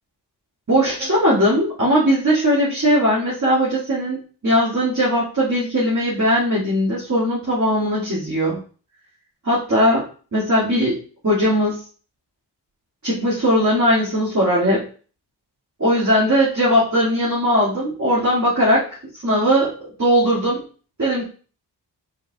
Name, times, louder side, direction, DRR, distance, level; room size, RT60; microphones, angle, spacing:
voice 1, 0.7-8.6 9.4-10.0 10.3-11.0 11.2-11.8 13.0-14.9 15.8-18.9 19.1-19.7 20.0-20.6 21.0-21.2, equal, 40° right, -9 dB, 2.3 m, -19 dB
4.9 x 4.5 x 2.4 m, 0.40 s
cardioid pair, 55°, 42 cm